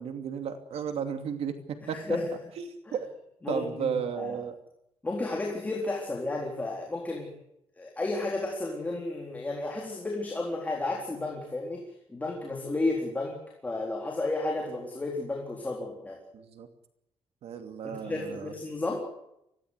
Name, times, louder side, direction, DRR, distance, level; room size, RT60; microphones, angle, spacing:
voice 1, 0.0-1.5 1.9-2.0 2.6-2.7 2.9-3.1 3.5-4.6 16.3-16.7 17.4-18.5, right 7 dB, 85° right, 6 dB, 2.7 m, -33 dB
voice 2, 1.9-2.3 2.9-3.0 3.4-4.4 5.0-7.3 7.8-11.8 12.1-13.4 13.6-16.2 17.8-19.1, left 2 dB, 15° left, -1 dB, 3.9 m, -32 dB
24.5 x 17.5 x 8.3 m, 0.81 s
wide cardioid pair, 170°, 10 cm